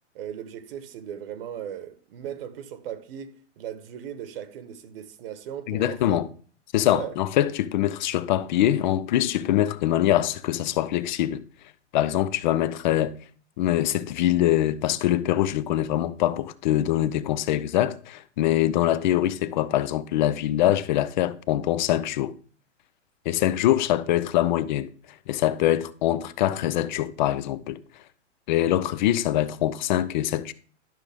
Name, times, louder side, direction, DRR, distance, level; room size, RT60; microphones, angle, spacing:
voice 1, 0.1-6.2 6.9-7.1, right 9 dB, 50° right, 1.1 m, -37 dB
voice 2, 5.7-6.3 6.7-11.4 11.9-13.1 13.6-22.3 23.3-24.9 25.3-27.8 28.5-30.5, left 13 dB, 40° left, 0.5 m, -23 dB
12.0 x 6.2 x 3.4 m
hypercardioid pair, 150°, 37 cm